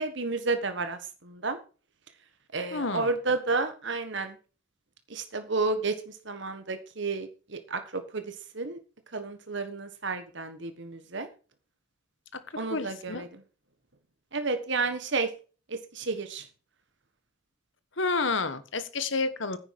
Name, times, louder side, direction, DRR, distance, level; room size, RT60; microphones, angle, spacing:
voice 1, 0.0-1.6 2.5-4.4 5.1-8.8 9.1-11.3 12.6-13.3 14.3-15.3 15.7-16.5, right 3 dB, 60° right, 9 dB, 1.4 m, -31 dB
voice 2, 2.7-3.1 12.3-12.4 12.7-13.3 18.0-19.6, left 3 dB, 60° left, 12 dB, 1.4 m, -30 dB
10.5 x 9.0 x 4.7 m, 0.35 s
head